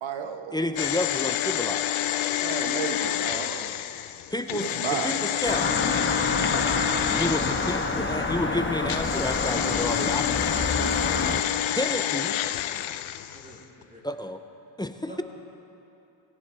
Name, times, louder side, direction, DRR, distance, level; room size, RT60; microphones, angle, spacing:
voice 1, 0.0-0.6 2.4-3.7 4.7-5.4, right 7 dB, 70° right, 6 dB, 1.2 m, -33 dB
voice 2, 0.5-2.4 4.3-5.7 7.1-10.6 11.7-12.4 14.0-14.4 14.8-15.2, left 1 dB, 10° left, 8 dB, 0.6 m, -31 dB
sound 1, 0.8-8.3 8.9-13.6 13.8-13.9, left 12 dB, 80° left, 0.6 m, -28 dB
sound 2, 5.5-11.4, left 3 dB, 25° left, 1.2 m, -27 dB
voice 3, 13.3-13.6 13.9-14.1 15.1-15.2, right 1 dB, 15° right, -4 dB, 3.6 m, -48 dB
18.5 x 18.5 x 3.4 m, 2.8 s
cardioid pair, 85°, 48 cm